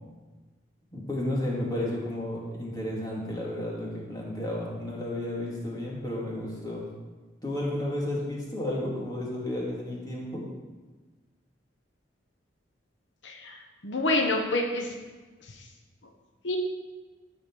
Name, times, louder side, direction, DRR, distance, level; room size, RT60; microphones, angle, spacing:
voice 1, 0.9-6.8 7.4-10.4, left 1 dB, 20° left, -4 dB, 2.3 m, -32 dB
voice 2, 13.2-14.9 15.5-15.6 16.4-16.6, left 2 dB, 85° left, 3 dB, 1.0 m, -28 dB
14.0 x 5.1 x 4.6 m, 1.3 s
head